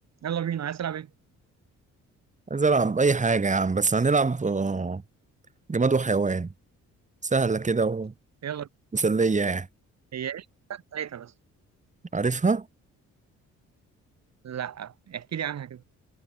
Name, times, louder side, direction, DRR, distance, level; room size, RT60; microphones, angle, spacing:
voice 1, 0.2-1.1 8.4-8.7 10.1-11.3 14.4-15.8, right 9 dB, 60° right, 6.2 m, -33 dB
voice 2, 2.5-5.0 5.7-6.5 7.3-8.1 8.9-9.7 12.1-12.6, right 4 dB, 25° right, 3.2 m, -23 dB
cardioid pair, 90°, 30 cm